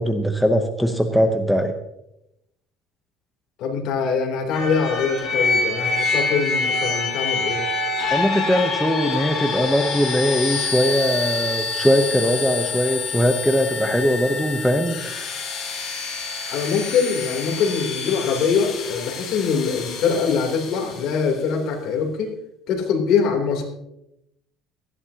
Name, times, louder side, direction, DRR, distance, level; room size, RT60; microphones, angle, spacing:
voice 1, 0.0-1.7 8.1-15.3, equal, ahead, 4 dB, 0.8 m, -21 dB
voice 2, 3.6-7.6 16.5-22.3 22.7-23.6, left 6 dB, 60° left, 1 dB, 3.2 m, -23 dB
sound 1, 4.5-21.2, left 4 dB, 40° left, 4.6 m, -27 dB
18.0 x 14.0 x 2.9 m, 0.83 s
cardioid pair, 155°, 0 cm